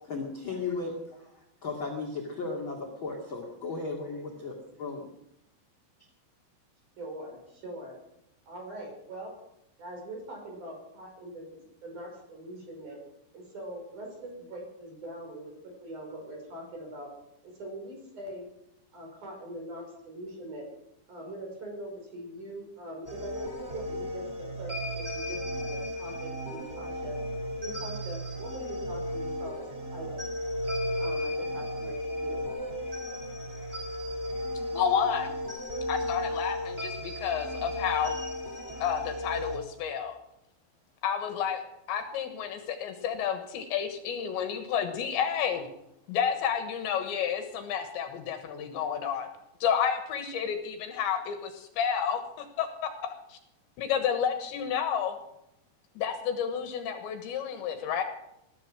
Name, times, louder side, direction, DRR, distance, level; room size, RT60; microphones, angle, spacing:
voice 1, 0.0-5.1, left 3 dB, 45° left, 0 dB, 1.6 m, -36 dB
voice 2, 7.0-8.0 8.5-9.3 9.8-13.0 13.3-15.5 15.8-17.1 17.4-18.5 18.9-20.7 21.1-27.2 27.6-30.2 30.9-32.4, right 1 dB, 40° right, 0 dB, 6.6 m, -42 dB
sound 1, 23.0-39.6, left 1 dB, 20° right, 1.7 m, -34 dB
voice 3, 34.7-35.3 35.9-38.2 38.8-40.2 41.0-41.6 41.9-45.7 46.1-49.3 49.6-53.4 53.8-55.2 56.0-58.0, left 8 dB, 70° left, 7 dB, 3.5 m, -30 dB
20.5 x 11.5 x 6.1 m, 0.82 s
omnidirectional pair, 5.7 m